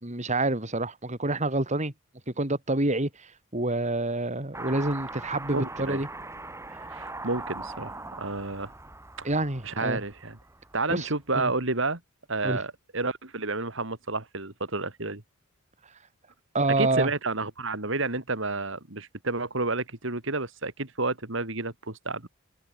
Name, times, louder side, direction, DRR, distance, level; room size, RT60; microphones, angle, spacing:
voice 1, 0.0-1.9 2.4-6.1 9.2-10.0 10.9-11.1 11.3-11.5 12.4-12.6 16.5-17.1, right 2 dB, 35° right, 3.4 m, -27 dB
Car passing by / Accelerating revving vroom, 4.5-11.1, right 2 dB, 15° right, 5.8 m, -41 dB
voice 2, 5.5-6.0 6.9-8.7 9.2-9.3 9.6-10.4 10.7-12.0 12.3-15.2 16.8-22.3, right 3 dB, 65° right, 3.3 m, -30 dB
head